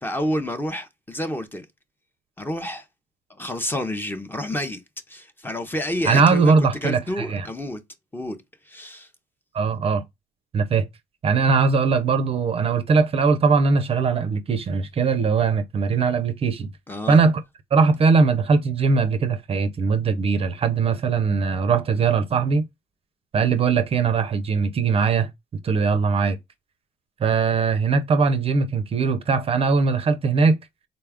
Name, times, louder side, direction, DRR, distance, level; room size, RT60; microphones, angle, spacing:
voice 1, 0.0-1.7 2.4-2.8 3.3-4.8 5.1-6.5 6.8-7.8 8.1-8.4 8.7-9.1 16.9-17.2, left 1 dB, 10° left, 0.6 m, -29 dB
voice 2, 6.0-7.5 9.5-10.0 10.5-10.9 11.2-16.7 17.1-17.4 17.7-22.7 23.3-25.3 25.6-26.4 27.2-30.6, right 5 dB, 35° right, 0.5 m, -20 dB
3.9 x 2.3 x 3.5 m
cardioid pair, 110°, 17 cm